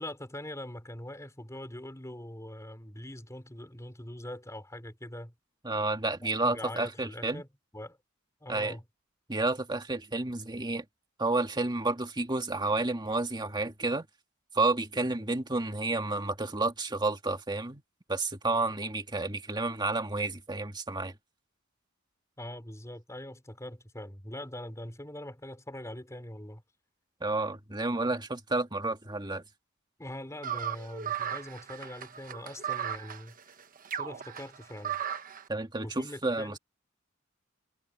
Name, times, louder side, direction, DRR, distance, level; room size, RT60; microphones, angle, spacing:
voice 1, 0.0-5.3 6.2-7.5 7.7-8.0 8.4-8.8 15.2-15.3 22.4-26.6 30.0-33.4 33.9-35.0 35.8-36.6, left 1 dB, 15° left, 3.8 m, -42 dB
voice 2, 5.6-7.4 8.5-8.8 9.3-10.8 11.2-14.1 14.5-17.8 18.1-21.1 27.2-29.4 35.5-36.6, right 2 dB, 20° right, 2.1 m, -30 dB
sound 1, 30.4-35.4, right 9 dB, 40° right, 1.1 m, -36 dB
head